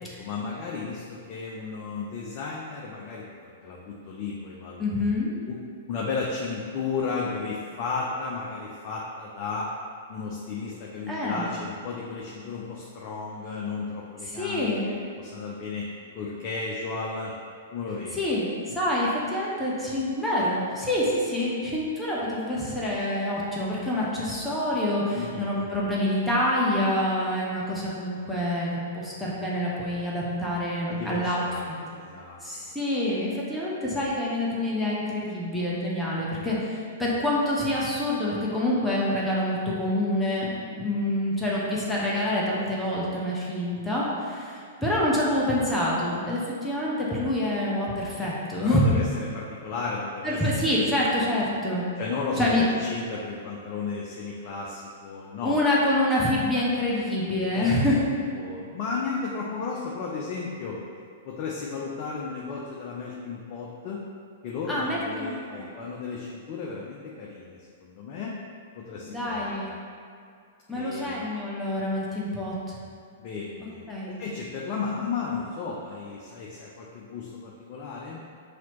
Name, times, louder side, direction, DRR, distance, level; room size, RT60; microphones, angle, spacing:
voice 1, 0.0-3.2 3.6-4.8 5.2-5.6 5.9-9.7 10.1-15.9 16.1-17.3 17.7-18.2 25.1-25.5 30.9-31.6 31.9-32.7 48.2-48.3 48.6-50.4 50.7-50.8 51.2-51.3 52.0-55.9 57.4-57.8 58.4-60.8 61.2-64.0 64.4-68.3 68.8-69.7 70.7-71.2 73.2-78.2, left 4 dB, 45° left, -3 dB, 0.5 m, -34 dB
voice 2, 4.8-5.3 11.1-11.5 14.2-14.9 18.1-31.4 32.4-48.9 50.2-51.8 52.3-52.6 55.4-57.9 64.7-65.7 69.1-69.7 70.7-72.8 73.9-74.2, left 1 dB, 5° left, -7 dB, 0.9 m, -27 dB
5.9 x 2.8 x 3.0 m, 2.3 s
figure-of-eight pair, 105°, 0 cm